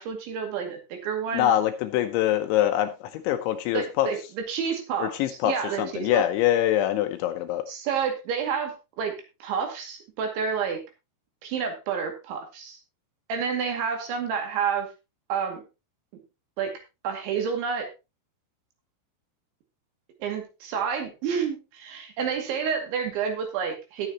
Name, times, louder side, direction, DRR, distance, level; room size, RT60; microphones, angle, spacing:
voice 1, 0.0-1.5 3.7-5.1 5.5-6.2 7.7-10.8 11.4-12.8 13.3-14.9 15.3-15.6 16.6-17.9 20.2-24.1, right 6 dB, 65° right, 4 dB, 4.5 m, -29 dB
voice 2, 1.3-4.1 5.0-5.5 5.8-7.6, left 12 dB, 80° left, 8 dB, 2.9 m, -24 dB
19.5 x 7.1 x 2.9 m, 0.26 s
omnidirectional pair, 5.8 m